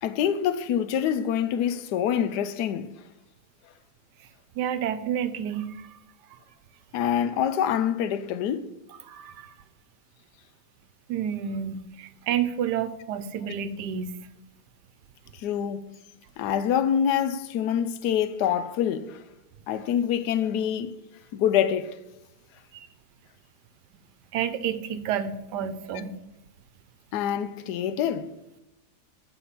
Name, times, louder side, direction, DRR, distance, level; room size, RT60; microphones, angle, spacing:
voice 1, 0.0-2.9 6.9-8.7 15.4-16.0 16.4-19.2 19.7-20.9 21.3-22.0 27.1-28.3, left 9 dB, 75° left, 1.1 m, -26 dB
voice 2, 4.6-6.0 6.3-6.4 9.0-9.5 11.1-14.2 22.7-22.9 24.3-26.1, right 8 dB, 80° right, 1.2 m, -30 dB
8.3 x 4.3 x 5.7 m
omnidirectional pair, 1.8 m